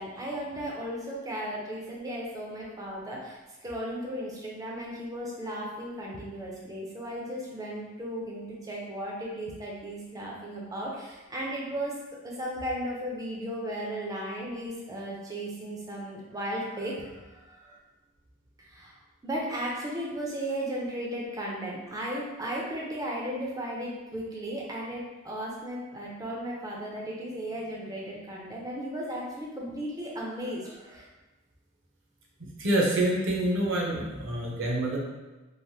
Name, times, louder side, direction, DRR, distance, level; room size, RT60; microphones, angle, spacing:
voice 1, 0.0-11.9 12.2-17.8 18.6-19.0 19.2-31.1, equal, 15° right, -3 dB, 0.5 m, -35 dB
voice 2, 32.6-35.0, right 1 dB, 60° right, -2 dB, 0.6 m, -26 dB
3.2 x 2.0 x 2.7 m, 1.2 s
head